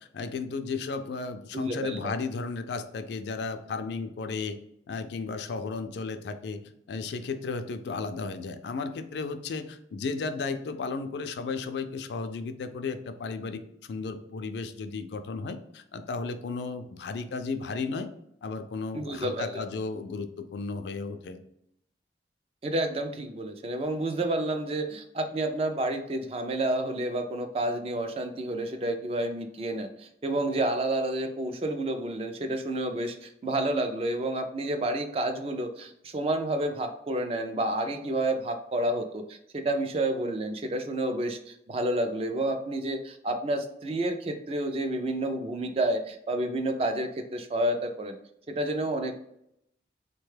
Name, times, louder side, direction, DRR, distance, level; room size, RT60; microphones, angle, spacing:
voice 1, 0.1-4.6 4.9-6.6 6.9-13.6 13.9-18.1 18.4-21.4, left 4 dB, 75° left, 9 dB, 0.4 m, -34 dB
voice 2, 1.5-2.1 18.9-19.6 22.6-48.2 48.5-49.2, right 1 dB, 35° right, 6 dB, 0.3 m, -30 dB
3.5 x 2.2 x 3.2 m, 0.76 s
head